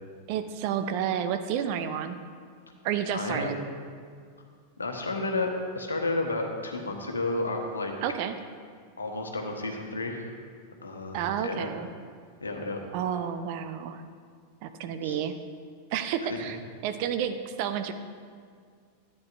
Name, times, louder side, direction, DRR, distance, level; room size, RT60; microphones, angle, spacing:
voice 1, 0.3-2.2 2.8-3.6 8.0-8.3 11.1-11.9 12.9-14.0 14.6-15.4 15.9-17.9, right 8 dB, 45° right, 9 dB, 0.6 m, -30 dB
voice 2, 3.1-3.6 4.8-7.9 9.0-10.3 10.8-11.7 12.4-13.0 15.0-15.2 16.3-16.4, left 2 dB, 75° left, 2 dB, 1.1 m, -32 dB
13.0 x 9.3 x 2.6 m, 2.1 s
figure-of-eight pair, 90°, 0 cm